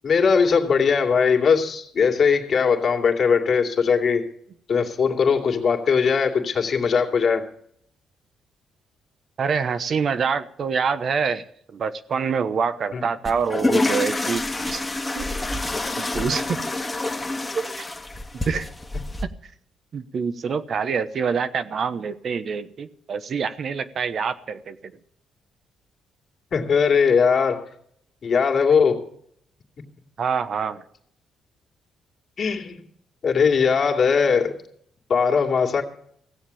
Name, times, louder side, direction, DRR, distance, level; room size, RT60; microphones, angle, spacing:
voice 1, 0.0-4.3 4.7-7.4 12.9-13.0 26.5-27.7 28.2-29.0 32.4-32.8 33.2-34.6 35.1-35.8, left 6 dB, 50° left, 2 dB, 2.5 m, -20 dB
voice 2, 9.4-11.4 11.7-14.8 15.1-15.2 16.0-16.6 17.6-17.8 18.3-18.7 19.9-24.9 30.2-30.8, right 6 dB, 55° right, 11 dB, 0.9 m, -26 dB
sound 1, 13.2-19.2, left 2 dB, 15° left, 1.5 m, -27 dB
16.5 x 7.5 x 8.5 m, 0.66 s
cardioid pair, 90°, 0 cm